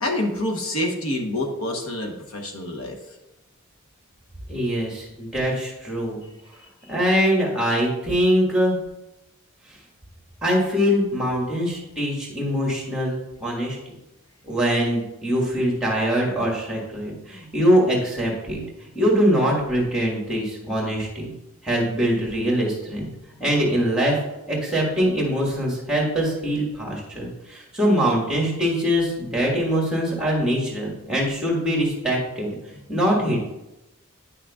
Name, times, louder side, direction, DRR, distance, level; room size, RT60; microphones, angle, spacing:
voice 1, 0.0-2.9, left 1 dB, 80° left, 2 dB, 1.1 m, -27 dB
voice 2, 4.5-6.2 6.9-8.8 10.4-13.8 14.4-21.3 21.6-23.1 23.4-32.6 32.9-33.4, equal, 5° right, -2 dB, 1.6 m, -23 dB
9.7 x 6.1 x 2.4 m, 0.93 s
head